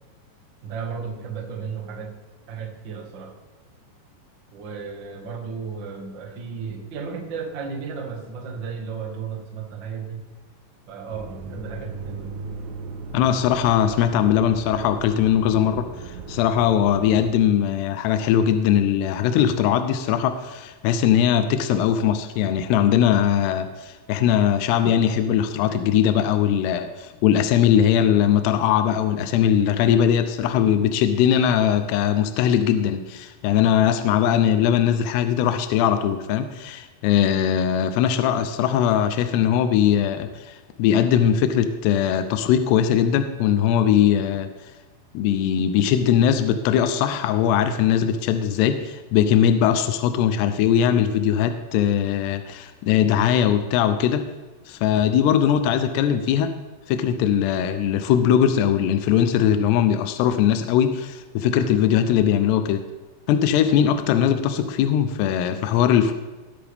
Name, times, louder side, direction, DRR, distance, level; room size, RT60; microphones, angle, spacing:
voice 1, 0.6-2.1 2.5-3.3 4.5-10.2 10.9-12.4, right 6 dB, 70° right, 1 dB, 1.1 m, -34 dB
sound 1, 11.1-17.3, right 3 dB, 85° right, 1.7 m, -37 dB
voice 2, 13.1-44.5 45.1-54.3 54.7-56.5 56.9-62.9 63.3-66.1, left 9 dB, 80° left, 9 dB, 2.5 m, -20 dB
20.0 x 8.5 x 3.6 m, 1.2 s
omnidirectional pair, 5.4 m